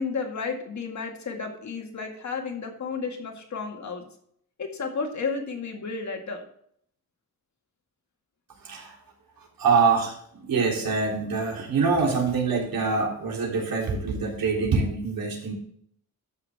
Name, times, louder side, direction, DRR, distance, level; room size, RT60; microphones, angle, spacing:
voice 1, 0.0-4.0 4.6-6.4, left 4 dB, 50° left, 3 dB, 2.1 m, -32 dB
voice 2, 8.6-8.9 9.6-15.5, right 4 dB, 70° right, -2 dB, 3.6 m, -25 dB
13.0 x 6.7 x 3.6 m, 0.66 s
wide cardioid pair, 155°, 36 cm